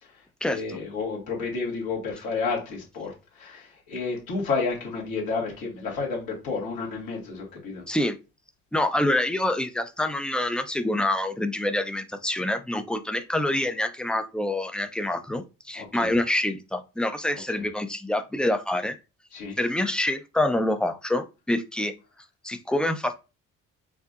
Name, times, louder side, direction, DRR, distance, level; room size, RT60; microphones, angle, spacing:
voice 1, 0.0-7.8 15.7-16.1 19.3-19.6, left 4 dB, 70° left, 1.9 m, -31 dB
voice 2, 8.7-19.0 19.6-21.9 22.4-23.2, left 1 dB, ahead, 0.5 m, -26 dB
4.6 x 2.6 x 2.5 m
hypercardioid pair, 45°, 38 cm